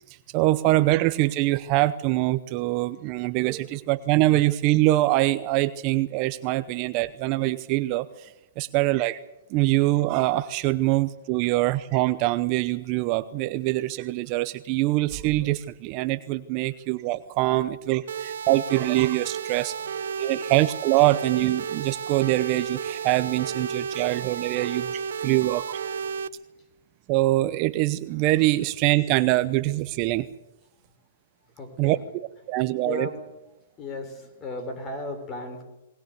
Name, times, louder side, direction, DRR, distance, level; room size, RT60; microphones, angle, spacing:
voice 1, 0.1-9.2 9.5-19.7 20.2-25.8 27.1-30.3 31.8-32.0 32.5-33.1, right 17 dB, 35° right, 12 dB, 0.8 m, -24 dB
sound 1, 18.1-26.3, right 6 dB, 75° right, 0.9 m, -32 dB
voice 2, 31.6-32.0 32.8-33.3 33.8-35.6, left 2 dB, 25° left, 7 dB, 4.6 m, -35 dB
20.0 x 20.0 x 8.2 m, 0.92 s
hypercardioid pair, 150°, 0 cm